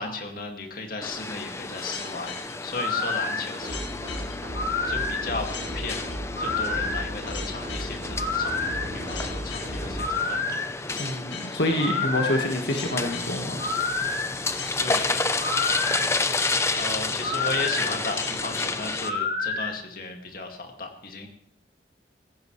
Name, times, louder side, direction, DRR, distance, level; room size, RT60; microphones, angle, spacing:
voice 1, 0.0-2.4 2.6-3.8 4.8-6.1 6.4-10.6 14.8-15.2 16.8-21.3, left 3 dB, 50° left, 3 dB, 2.2 m, -35 dB
sound 1, 1.0-19.1, left 3 dB, 15° left, 0.6 m, -31 dB
sound 2, 1.8-19.7, left 4 dB, 85° left, 2.2 m, -30 dB
sound 3, 3.6-10.0, equal, 45° right, 6.6 m, -35 dB
voice 2, 11.0-13.7, left 1 dB, 70° left, 2 dB, 1.6 m, -27 dB
16.5 x 15.5 x 3.2 m, 0.75 s
head